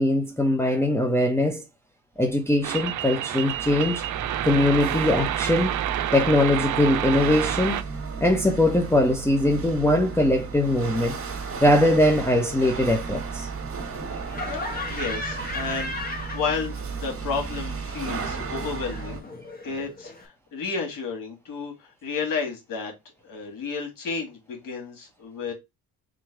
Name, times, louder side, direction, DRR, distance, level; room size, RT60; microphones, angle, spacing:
voice 1, 0.0-1.6 2.2-4.0 4.4-5.8 6.1-7.8 8.2-11.2 11.6-13.5, left 1 dB, 5° left, 0.8 m, -21 dB
Chatter / Hiss / Rattle, 2.3-19.2, right 5 dB, 40° right, 1.7 m, -34 dB
sound 1, 2.6-7.8, right 12 dB, 60° right, 0.6 m, -28 dB
Laughter, 14.3-17.1 17.3-20.2, left 2 dB, 25° left, 1.4 m, -36 dB
voice 2, 14.6-19.3 19.6-22.9 23.2-25.5, left 5 dB, 65° left, 2.3 m, -32 dB
3.7 x 2.9 x 4.8 m
cardioid pair, 85°, 36 cm